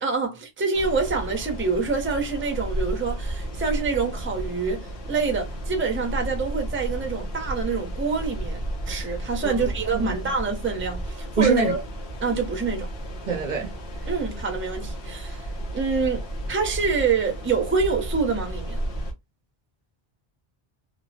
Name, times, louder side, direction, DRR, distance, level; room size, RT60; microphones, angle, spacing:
voice 1, 0.0-11.8 12.2-12.9 14.1-15.5 15.7-18.8, right 4 dB, 15° right, 0.5 m, -26 dB
sound 1, 0.7-19.1, right 1 dB, 85° left, 1.1 m, -33 dB
voice 2, 9.4-10.3 11.4-11.8 13.3-13.7 14.0-14.1, right 4 dB, 55° right, 0.6 m, -25 dB
3.0 x 2.0 x 2.6 m
omnidirectional pair, 1.0 m